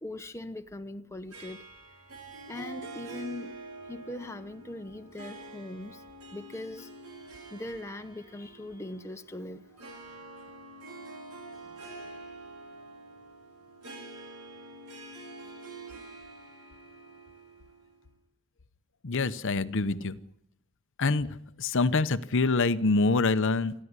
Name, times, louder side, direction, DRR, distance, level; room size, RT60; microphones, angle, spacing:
voice 1, 0.0-1.6 2.5-3.6 3.9-6.0 6.3-6.9 7.5-9.6, left 2 dB, 10° left, 0.9 m, -40 dB
Harp, 1.3-18.1, right 2 dB, 85° right, 4.8 m, -46 dB
voice 2, 19.0-20.2 21.0-21.3 21.6-23.7, left 3 dB, 55° left, 0.8 m, -25 dB
27.5 x 11.0 x 9.6 m
head